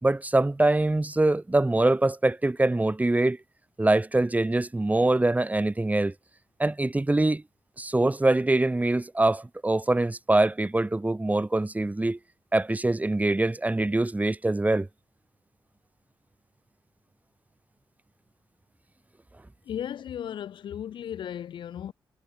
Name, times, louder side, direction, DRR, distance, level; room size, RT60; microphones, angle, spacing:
voice 1, 0.0-3.4 3.8-6.1 6.6-7.4 7.8-12.2 12.5-14.9, right 2 dB, 20° right, 2.1 m, -24 dB
voice 2, 19.7-21.9, left 10 dB, 80° left, 4.8 m, -35 dB
cardioid pair, 60°, 8 cm